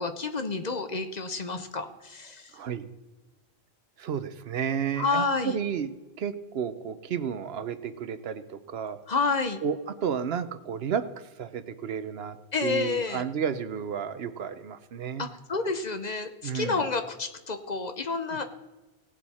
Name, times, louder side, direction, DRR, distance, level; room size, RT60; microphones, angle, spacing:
voice 1, 0.0-2.5 5.0-5.6 9.1-9.6 12.5-13.2 15.2-18.4, left 4 dB, 45° left, 8 dB, 0.8 m, -29 dB
voice 2, 2.5-2.9 4.0-9.0 9.6-12.4 12.6-15.2 16.4-16.8, right 7 dB, 75° right, 12 dB, 0.9 m, -32 dB
18.0 x 7.4 x 4.2 m, 1.1 s
omnidirectional pair, 1.1 m